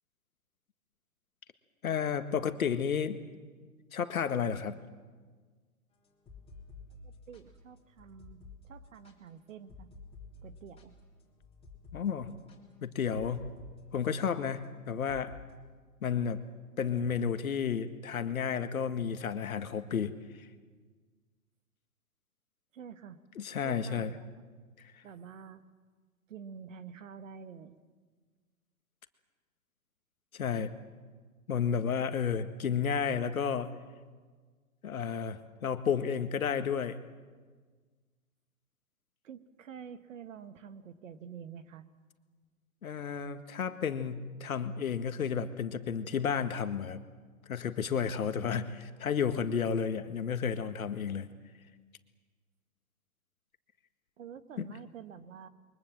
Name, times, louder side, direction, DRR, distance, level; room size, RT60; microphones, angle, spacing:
voice 1, 1.8-3.2 3.9-4.8 11.9-12.3 12.8-13.5 13.9-15.4 16.0-16.4 16.8-20.5 23.4-24.1 30.3-30.7 31.5-33.7 34.8-37.0 42.8-47.0 47.5-51.3 54.6-54.7, left 7 dB, 70° left, 10 dB, 1.8 m, -32 dB
sound 1, 6.0-13.7 14.0-14.3 15.1-15.4, left 3 dB, 15° left, 3.8 m, -52 dB
voice 2, 7.0-9.9 10.4-10.9 22.7-23.2 23.6-24.3 25.0-25.6 26.3-27.8 39.2-41.9 54.2-55.5, right 7 dB, 60° right, 11 dB, 1.8 m, -48 dB
29.0 x 23.0 x 7.5 m, 1.5 s
figure-of-eight pair, 120°, 44 cm